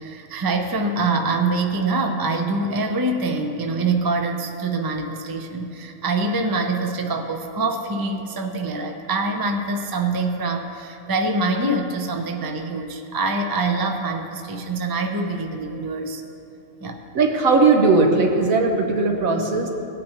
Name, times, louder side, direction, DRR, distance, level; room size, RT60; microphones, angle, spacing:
voice 1, 0.0-16.2 16.8-17.0, right 3 dB, 35° right, 4 dB, 0.3 m, -25 dB
voice 2, 17.1-19.7, right 3 dB, 80° right, 2 dB, 1.5 m, -18 dB
17.0 x 9.2 x 2.9 m, 2.7 s
omnidirectional pair, 1.4 m